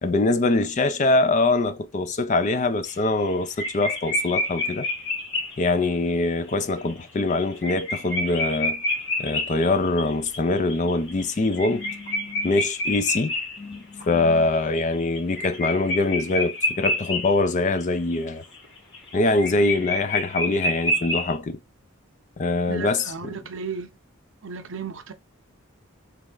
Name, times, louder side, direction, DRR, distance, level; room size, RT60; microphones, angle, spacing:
voice 1, 0.0-4.9 5.6-8.8 9.2-18.4 19.1-21.6 22.4-23.1, left 2 dB, 35° left, 0.4 m, -23 dB
sound 1, 2.9-3.3 3.6-5.9 6.5-6.6 6.8-6.9 7.3-14.1 14.5-17.4 17.7-17.8 18.1-21.3, left 1 dB, 55° left, 1.9 m, -28 dB
voice 2, 22.7-24.0 24.4-25.1, right 5 dB, 65° right, 0.6 m, -34 dB
3.4 x 3.1 x 3.8 m
head